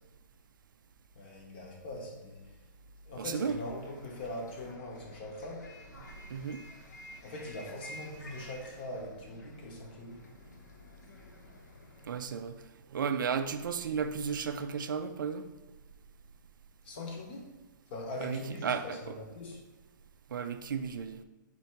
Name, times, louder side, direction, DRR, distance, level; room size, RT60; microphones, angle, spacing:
voice 1, 1.1-2.6 3.0-5.7 7.2-10.3 16.8-17.5 17.9-19.6, left 1 dB, 30° left, 0.8 m, -42 dB
voice 2, 3.2-3.6 6.3-6.6 12.0-12.6 12.9-15.5 18.2-19.1 20.3-21.2, right 6 dB, 70° right, 0.4 m, -34 dB
Bus, 3.5-12.2, left 1 dB, 55° left, 0.8 m, -51 dB
4.3 x 2.8 x 4.4 m
hypercardioid pair, 170°, 11 cm